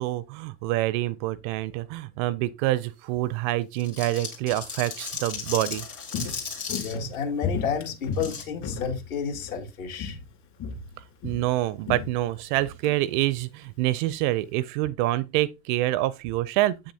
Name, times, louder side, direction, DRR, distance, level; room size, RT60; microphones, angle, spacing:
voice 1, 0.0-5.8 11.2-16.9, right 16 dB, 35° right, 0.4 m, -26 dB
sound 1, 3.8-6.9 8.1-8.4, left 5 dB, 85° left, 2.6 m, -35 dB
Walk footsteps, 5.3-9.7 9.9-10.3 10.6-12.9 13.2-13.3, left 5 dB, 40° left, 2.6 m, -35 dB
voice 2, 6.8-10.2, left 6 dB, 65° left, 2.2 m, -31 dB
7.9 x 6.3 x 2.7 m
hypercardioid pair, 95°, 44 cm